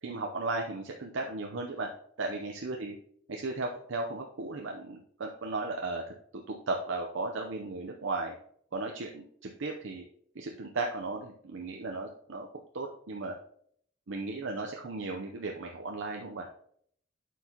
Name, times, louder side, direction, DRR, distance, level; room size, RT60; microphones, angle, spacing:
voice 1, 0.0-1.9 2.2-3.0 3.3-6.1 6.5-8.4 8.7-10.1 10.3-12.5 12.7-13.4 14.1-16.5, right 3 dB, 80° right, 1 dB, 0.7 m, -35 dB
11.5 x 4.6 x 2.9 m, 0.65 s
head